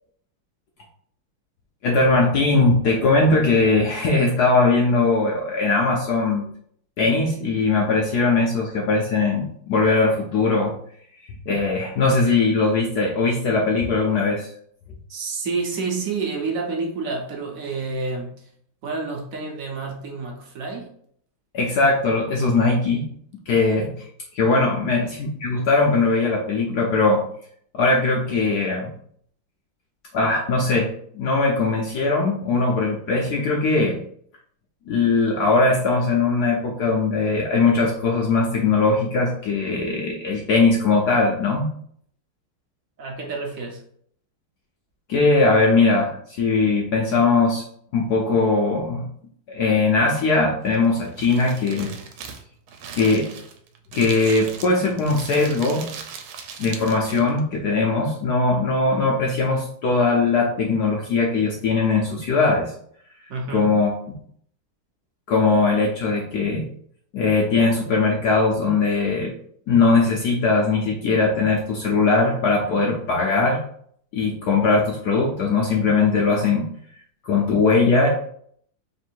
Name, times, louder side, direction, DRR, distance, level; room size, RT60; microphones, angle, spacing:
voice 1, 1.8-6.4 7.0-10.7 11.5-14.5 21.5-23.1 23.5-23.9 24.3-27.2 27.7-28.9 30.1-34.0 34.9-41.7 45.1-47.6 47.9-49.1 49.5-51.9 52.9-53.3 53.9-55.8 56.6-62.7 63.5-63.9 65.3-66.6 67.1-69.3 69.7-73.6 74.1-76.7 77.2-78.1, left 3 dB, 75° left, -1 dB, 0.9 m, -20 dB
voice 2, 15.1-18.5 18.8-20.9 24.8-25.2 43.0-43.8 63.3-63.8, right 4 dB, 60° right, 0 dB, 0.9 m, -29 dB
Crumpling crinkling, 50.6-57.4, right 6 dB, 85° right, 1.4 m, -39 dB
3.4 x 2.6 x 4.4 m, 0.64 s
omnidirectional pair, 2.2 m